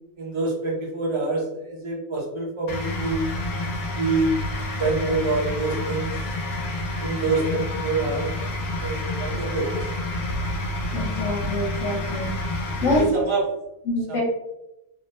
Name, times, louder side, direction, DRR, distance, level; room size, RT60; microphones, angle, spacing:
voice 1, 0.2-3.2 4.0-4.4 4.8-6.1 7.0-8.3 8.8-9.8 12.9-13.4, right 3 dB, 45° right, -2 dB, 0.4 m, -26 dB
sound 1, 2.7-13.0, left 1 dB, 80° left, 1.2 m, -29 dB
voice 2, 10.9-12.3 12.8-13.2 13.8-14.2, left 1 dB, 60° left, -3 dB, 1.2 m, -25 dB
3.1 x 2.1 x 3.0 m, 0.86 s
omnidirectional pair, 1.5 m